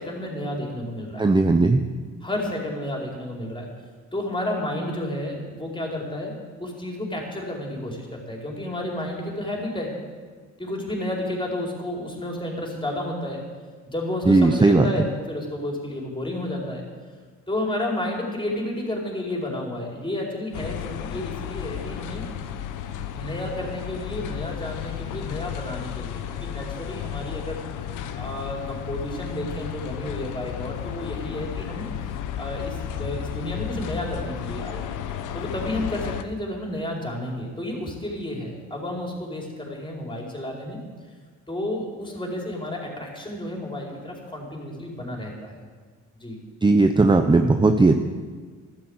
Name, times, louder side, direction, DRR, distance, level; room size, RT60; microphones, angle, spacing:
voice 1, 0.0-1.3 2.2-3.7 4.1-9.9 10.6-13.4 13.9-16.8 17.5-22.2 23.1-27.6 28.2-31.8 32.4-34.9 35.3-40.8 41.5-45.6 46.2-46.4, left 1 dB, 15° left, -1 dB, 4.7 m, -31 dB
voice 2, 1.2-1.8 14.3-14.9 46.6-47.9, right 3 dB, 15° right, 6 dB, 0.8 m, -17 dB
sound 1, 20.5-36.2, left 9 dB, 90° left, 1.1 m, -33 dB
13.5 x 12.0 x 8.1 m, 1.5 s
cardioid pair, 90°, 30 cm